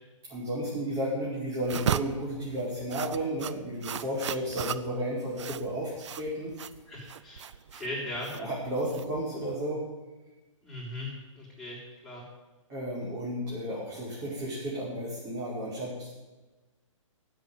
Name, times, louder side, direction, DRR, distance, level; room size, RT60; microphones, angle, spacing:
voice 1, 0.3-6.5 8.3-9.8 12.7-16.1, right 1 dB, 30° right, -8 dB, 5.6 m, -33 dB
sound 1, 1.6-9.5, right 8 dB, 60° right, 0.7 m, -36 dB
voice 2, 6.9-7.4 7.7-8.3 10.6-12.2, left 1 dB, ahead, -7 dB, 6.2 m, -38 dB
14.0 x 8.0 x 9.3 m, 1.2 s
hypercardioid pair, 135°, 17 cm